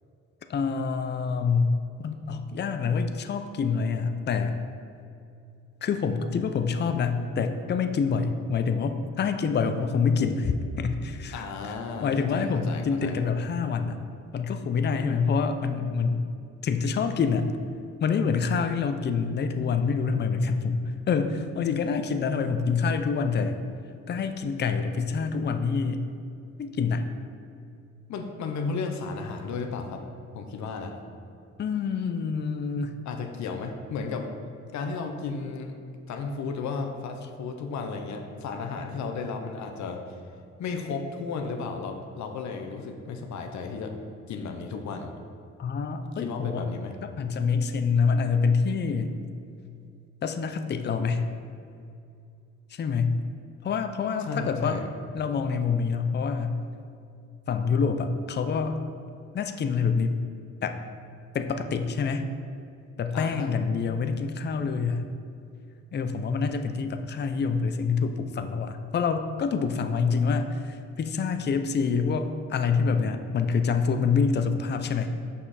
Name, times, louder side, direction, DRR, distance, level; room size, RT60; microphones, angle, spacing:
voice 1, 0.5-1.7 2.0-4.6 5.8-14.0 14.3-16.3 16.6-17.5 18.0-23.6 24.1-26.1 26.6-27.0 31.6-32.9 45.6-46.7 47.0-49.1 50.2-51.3 52.7-53.2 53.6-54.8 55.1-56.6 57.5-58.8 59.3-60.2 60.6-60.8 61.3-62.3 63.0-65.1 65.9-75.1, left 5 dB, 35° left, 7 dB, 0.5 m, -26 dB
voice 2, 11.3-13.2 28.1-30.0 30.3-30.9 33.0-34.3 34.7-35.7 36.1-40.0 40.6-43.9 44.3-45.1 46.2-46.9 54.2-54.9 63.1-63.6, left 4 dB, 70° left, 4 dB, 0.8 m, -34 dB
6.6 x 5.6 x 4.1 m, 2.5 s
cardioid pair, 90°, 30 cm